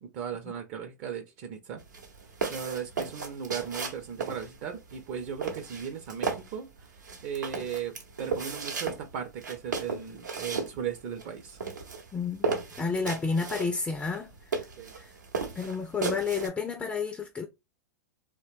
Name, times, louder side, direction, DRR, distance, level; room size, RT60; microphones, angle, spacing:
voice 1, 0.0-1.8 2.5-7.9 8.2-11.6 14.8-14.9, right 8 dB, 45° right, 0.5 m, -37 dB
sound 1, 1.8-16.5, right 4 dB, 85° right, 0.8 m, -35 dB
voice 2, 12.1-14.7 14.9-15.1 15.6-17.5, left 5 dB, 10° left, 0.3 m, -31 dB
2.7 x 2.1 x 2.5 m
hypercardioid pair, 100°, 10 cm